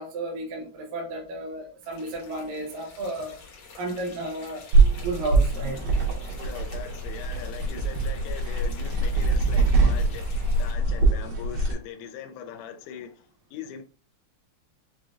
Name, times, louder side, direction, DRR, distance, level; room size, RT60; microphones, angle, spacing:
voice 1, 0.0-3.4 3.8-4.6 5.0-5.9, right 2 dB, 75° right, 2.0 m, -33 dB
sound 1, 1.8-10.7, left 4 dB, 60° left, 2.0 m, -48 dB
sound 2, 4.7-11.7, right 3 dB, 90° right, 2.9 m, -23 dB
voice 2, 6.4-13.8, left 8 dB, 90° left, 2.1 m, -41 dB
6.9 x 2.4 x 2.5 m
omnidirectional pair, 3.5 m